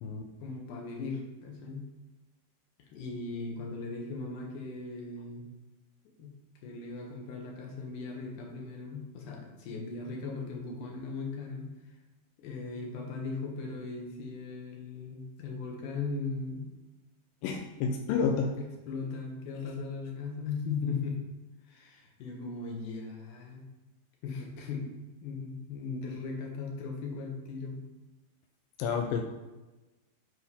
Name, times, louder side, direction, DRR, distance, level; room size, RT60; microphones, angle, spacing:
voice 1, 0.4-1.9 2.8-5.5 6.2-6.3 6.6-11.7 12.4-16.7 18.6-21.2 21.7-23.6 24.2-24.9 25.2-27.8, left 4 dB, 60° left, 0 dB, 2.6 m, -38 dB
voice 2, 17.4-18.5 28.8-29.2, left 5 dB, 85° left, 3 dB, 2.1 m, -29 dB
6.4 x 5.7 x 5.5 m, 1.1 s
omnidirectional pair, 4.5 m